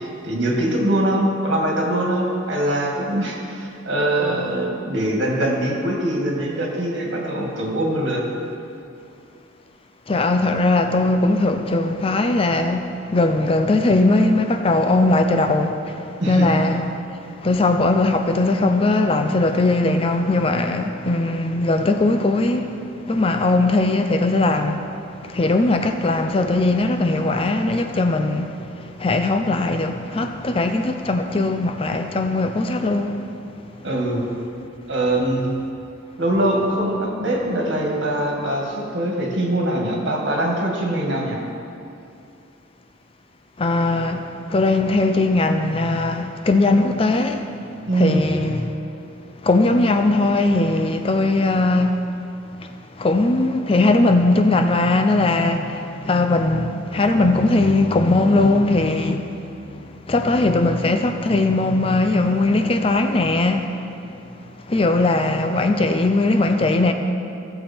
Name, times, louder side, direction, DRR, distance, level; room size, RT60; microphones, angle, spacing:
voice 1, 0.0-8.2 16.2-16.5 33.8-34.3 34.9-35.5 36.2-41.4 47.9-48.3, right 1 dB, 60° right, 2.0 m, -22 dB
voice 2, 10.1-17.1 17.4-22.8 23.1-24.8 25.2-33.2 43.6-47.6 47.9-48.7 49.4-52.0 52.6-52.7 53.0-59.8 60.1-63.8 64.6-66.9, left 2 dB, 30° left, 0.4 m, -19 dB
15.5 x 7.0 x 4.4 m
head